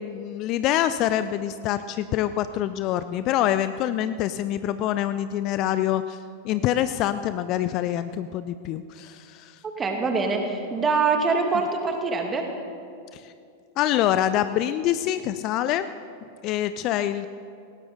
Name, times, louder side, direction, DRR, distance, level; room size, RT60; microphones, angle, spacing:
voice 1, 0.0-9.6 13.1-13.3 13.8-15.9 16.4-17.3, left 12 dB, 40° left, 12 dB, 0.5 m, -25 dB
voice 2, 9.6-12.5, right 4 dB, 20° right, 3 dB, 2.1 m, -24 dB
18.5 x 17.5 x 3.9 m, 2.4 s
figure-of-eight pair, 90°, 0 cm